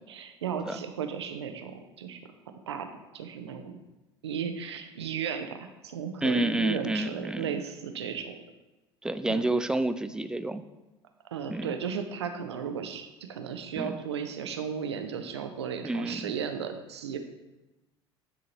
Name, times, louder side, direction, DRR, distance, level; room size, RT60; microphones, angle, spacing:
voice 1, 0.1-2.2 2.7-2.9 3.1-3.8 4.2-8.4 9.3-9.5 11.3-17.2, right 7 dB, 80° right, 7 dB, 0.6 m, -35 dB
voice 2, 6.2-7.6 9.0-10.6 11.5-11.7 13.8-14.0 15.8-16.3, right 1 dB, 5° right, 11 dB, 0.3 m, -29 dB
9.6 x 3.7 x 2.9 m, 1.0 s
figure-of-eight pair, 65°, 14 cm